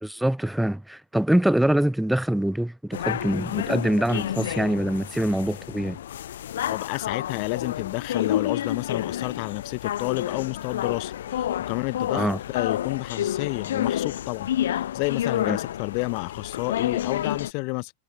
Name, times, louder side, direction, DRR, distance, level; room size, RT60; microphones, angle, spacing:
voice 1, 0.0-6.0 12.1-12.4 15.4-15.6, right 1 dB, ahead, 1.4 m, -24 dB
sound 1, 2.9-17.5, left 11 dB, 60° left, 4.4 m, -30 dB
voice 2, 6.7-12.3 12.5-17.9, left 37 dB, 45° left, 2.3 m, -30 dB
figure-of-eight pair, 90°, 0 cm